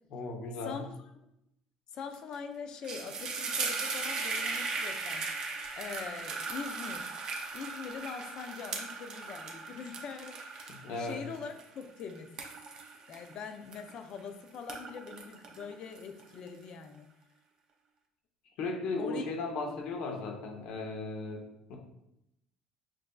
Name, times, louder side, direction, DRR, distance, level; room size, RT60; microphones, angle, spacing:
voice 1, 0.1-0.8 10.7-11.2 18.6-21.4 21.7-21.8, left 3 dB, 60° left, 1 dB, 0.9 m, -36 dB
voice 2, 0.6-1.2 1.9-5.2 5.8-7.1 7.5-12.3 13.1-17.1 19.0-19.2, left 6 dB, 40° left, 7 dB, 0.4 m, -43 dB
sound 1, 2.1-2.4 2.6-14.2 14.5-16.5, right 4 dB, 35° right, 0.5 m, -38 dB
7.5 x 2.6 x 2.3 m, 0.82 s
cardioid pair, 175°, 2 cm